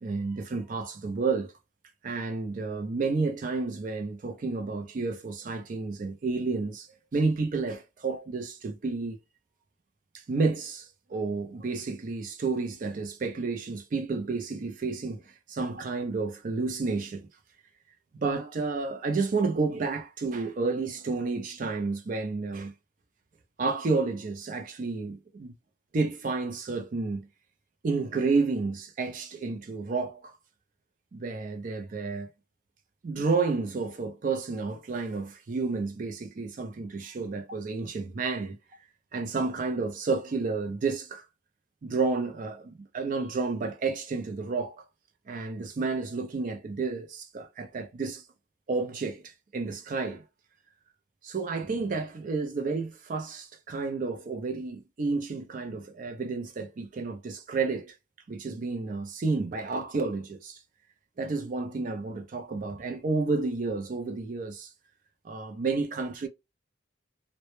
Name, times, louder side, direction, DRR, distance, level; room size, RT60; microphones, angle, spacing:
voice 1, 0.0-1.5 2.0-9.2 10.1-15.2 15.5-17.3 18.2-22.7 23.6-25.5 25.9-27.3 27.8-30.3 31.1-32.3 33.0-38.6 39.1-41.2 41.8-44.8 45.3-48.2 48.7-50.2 51.2-57.9 58.3-60.6 61.2-64.7 65.2-66.3, right 4 dB, 45° right, 0.4 m, -31 dB
2.0 x 2.0 x 2.9 m
head